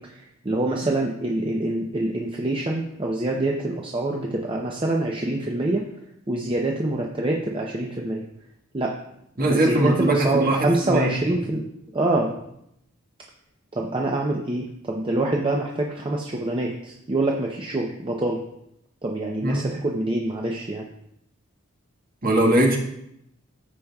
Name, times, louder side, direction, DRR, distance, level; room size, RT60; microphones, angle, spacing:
voice 1, 0.0-5.8 6.3-8.2 8.7-8.9 9.4-11.6 11.9-12.3 13.7-18.4 19.0-20.9, right 2 dB, 25° right, -1 dB, 0.6 m, -25 dB
voice 2, 9.4-11.1 19.4-19.7 22.2-22.8, right 1 dB, 45° right, 0 dB, 1.5 m, -20 dB
15.0 x 5.1 x 2.3 m, 0.77 s
head